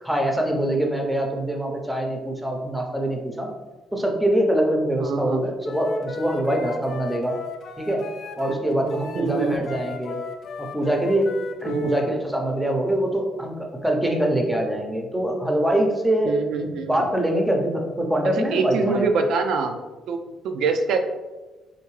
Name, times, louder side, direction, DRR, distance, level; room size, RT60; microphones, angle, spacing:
voice 1, 0.0-3.5 3.9-7.3 7.8-8.0 8.4-10.2 10.6-11.3 11.6-19.1, right 1 dB, 5° right, 2 dB, 0.6 m, -24 dB
voice 2, 5.0-5.4 9.1-9.6 11.7-12.0 16.2-17.1 18.5-19.8 20.1-21.0, right 4 dB, 80° right, 5 dB, 0.3 m, -25 dB
Wind instrument woodwind instrument, 5.6-8.6 8.9-12.1, left 4 dB, 65° left, 0.4 m, -35 dB
3.5 x 2.6 x 3.1 m, 1.2 s
cardioid pair, 95°, 0 cm